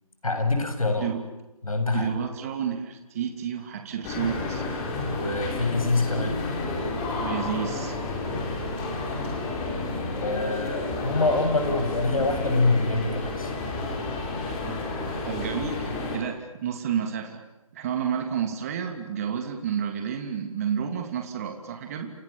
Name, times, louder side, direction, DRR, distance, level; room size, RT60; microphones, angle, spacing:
voice 1, 0.2-1.1 1.6-2.1 5.0-6.4 10.2-13.6, left 2 dB, 75° left, 7 dB, 7.5 m, -25 dB
voice 2, 1.9-4.7 7.2-8.0 15.2-17.4 17.7-22.1, right 8 dB, 25° right, 5 dB, 2.8 m, -30 dB
sound 1, 4.0-16.2, left 3 dB, 15° left, 4.8 m, -31 dB
30.0 x 28.0 x 7.2 m, 0.97 s
figure-of-eight pair, 155°, 18 cm